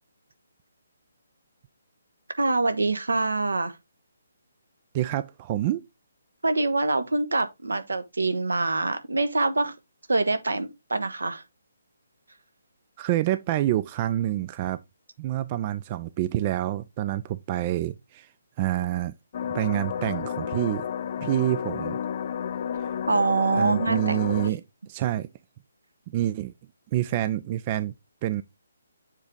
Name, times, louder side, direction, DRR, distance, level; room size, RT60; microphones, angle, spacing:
voice 1, 2.4-3.8 6.4-9.7 10.1-11.4 23.1-24.2 24.4-24.5, right 3 dB, 75° right, 1.0 m, -25 dB
voice 2, 4.9-5.8 13.0-14.8 15.2-18.3 18.6-19.1 19.5-20.9 21.2-22.0 23.5-24.6 24.9-25.3 26.1-26.5 26.9-27.9 28.2-28.4, right 13 dB, 30° right, 0.3 m, -27 dB
sound 1, 19.3-24.5, left 8 dB, 45° left, 0.4 m, -31 dB
7.3 x 3.4 x 3.7 m
figure-of-eight pair, 140°, 0 cm